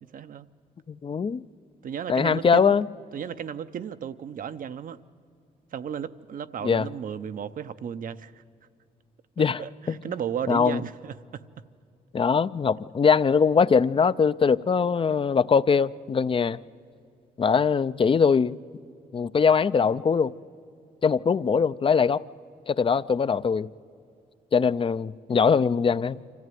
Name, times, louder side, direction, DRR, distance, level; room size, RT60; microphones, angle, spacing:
voice 1, 0.1-0.5 1.8-2.7 3.1-5.0 5.7-8.4 9.4-11.4, right 8 dB, 60° right, 0.7 m, -34 dB
voice 2, 0.9-1.4 2.1-2.9 6.6-6.9 9.4-10.0 10.5-10.8 12.1-16.6 17.4-18.6 19.1-20.3 21.0-22.2 22.7-23.7 24.5-26.2, left 6 dB, 35° left, 0.4 m, -22 dB
25.0 x 14.5 x 9.3 m
cardioid pair, 75°, 16 cm